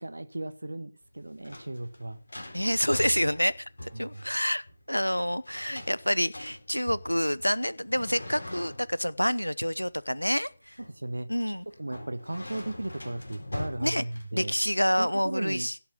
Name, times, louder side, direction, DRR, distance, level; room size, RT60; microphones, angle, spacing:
voice 1, 0.0-2.2 3.9-4.2 10.8-11.3 11.8-14.5 15.0-15.7, right 1 dB, 65° right, 12 dB, 1.5 m, -36 dB
sound 1, 1.0-14.7, left 1 dB, 60° left, 4.1 m, -43 dB
voice 2, 2.5-10.8 11.3-11.6 13.8-14.0 14.3-15.8, equal, 85° left, 20 dB, 0.8 m, -28 dB
16.5 x 7.1 x 6.9 m, 0.38 s
figure-of-eight pair, 160°, 0 cm